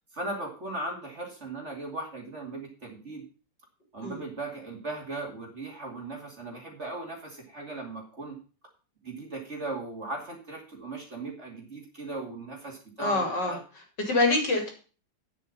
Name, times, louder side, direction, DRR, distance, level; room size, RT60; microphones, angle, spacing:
voice 1, 0.1-3.2 3.9-8.4 9.0-13.6, right 2 dB, 30° right, 1 dB, 2.7 m, -38 dB
voice 2, 13.0-13.6 14.0-14.7, left 2 dB, 50° left, 3 dB, 3.3 m, -25 dB
9.4 x 7.9 x 5.3 m, 0.37 s
omnidirectional pair, 2.4 m